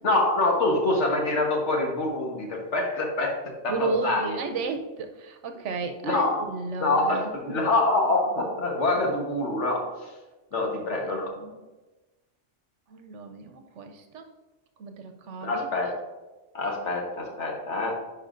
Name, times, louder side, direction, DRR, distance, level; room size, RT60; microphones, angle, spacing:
voice 1, 0.0-3.4 3.6-4.4 6.0-6.5 6.8-9.9 10.5-11.3 15.4-16.0 16.5-18.0, left 2 dB, 75° left, 1 dB, 1.5 m, -25 dB
voice 2, 3.7-7.3 10.5-11.1 11.4-11.6 12.9-14.3 14.8-15.7, right 4 dB, 80° right, 6 dB, 1.0 m, -33 dB
10.0 x 4.8 x 2.5 m, 1.1 s
omnidirectional pair, 1.2 m